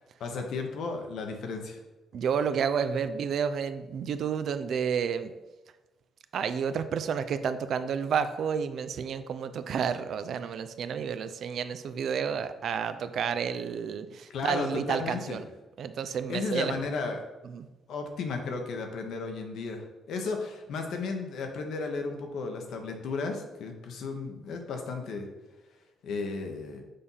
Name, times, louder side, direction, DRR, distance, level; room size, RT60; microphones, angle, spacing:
voice 1, 0.2-1.8 14.3-15.4 16.3-17.2 17.9-25.3 26.0-26.8, left 4 dB, 75° left, 4 dB, 1.0 m, -34 dB
voice 2, 2.1-5.3 6.3-15.5 15.8-16.7 17.4-17.7, right 7 dB, 65° right, 11 dB, 0.4 m, -30 dB
6.7 x 2.7 x 5.5 m, 1.1 s
cardioid pair, 90°, 0 cm